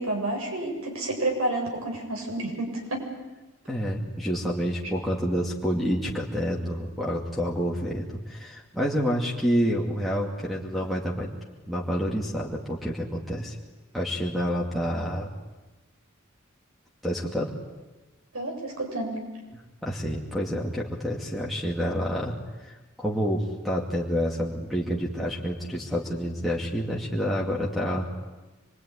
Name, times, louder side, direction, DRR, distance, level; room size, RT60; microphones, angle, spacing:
voice 1, 0.0-3.0 18.3-19.2, right 2 dB, 75° right, 1 dB, 7.7 m, -30 dB
voice 2, 3.7-11.3 11.6-13.6 13.9-15.3 17.0-17.5 19.8-22.4 22.6-28.1, equal, ahead, -5 dB, 2.5 m, -28 dB
25.5 x 23.0 x 9.9 m, 1.1 s
head